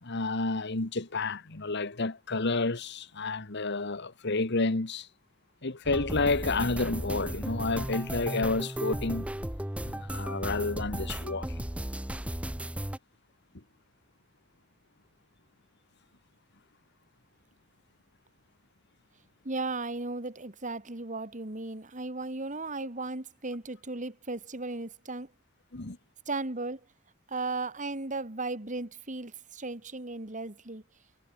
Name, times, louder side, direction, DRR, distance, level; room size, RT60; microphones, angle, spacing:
voice 1, 0.0-5.1 5.6-9.3 9.8-11.6 25.7-26.0, left 3 dB, 55° left, 1.6 m, -30 dB
sound 1, 5.8-13.0, right 1 dB, 5° right, 0.7 m, -35 dB
voice 2, 19.4-25.3 26.3-26.8 27.3-30.8, right 3 dB, 35° right, 2.5 m, -36 dB
head